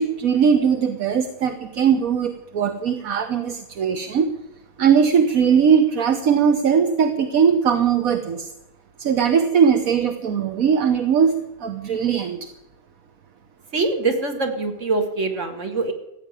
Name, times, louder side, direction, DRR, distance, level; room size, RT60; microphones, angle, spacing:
voice 1, 0.0-4.3 4.8-8.5 9.0-11.3 11.6-12.5, right 7 dB, 75° right, 7 dB, 1.5 m, -19 dB
voice 2, 13.7-15.9, right 3 dB, 55° right, 5 dB, 2.3 m, -23 dB
15.0 x 9.0 x 9.7 m, 0.91 s
omnidirectional pair, 1.5 m